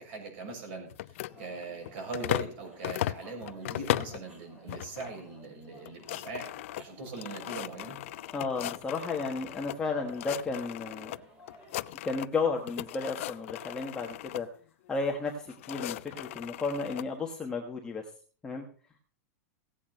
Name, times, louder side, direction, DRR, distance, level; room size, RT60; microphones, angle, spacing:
voice 1, 0.0-8.0, right 3 dB, 45° right, 3 dB, 6.4 m, -41 dB
sound 1, 0.9-2.6 2.8-4.2 4.7-5.1 5.4-5.5 5.8-9.8 10.1-11.2 11.5-12.4 12.7-14.4 15.2-17.1, left 15 dB, 50° left, 0.5 m, -37 dB
sound 2, 1.3-11.7, equal, 10° right, 4.7 m, -56 dB
voice 2, 8.3-11.1 12.0-14.5 14.9-18.0 18.4-18.6, left 4 dB, 10° left, 0 dB, 1.2 m, -33 dB
16.5 x 8.5 x 5.5 m, 0.42 s
supercardioid pair, 175°, 9 cm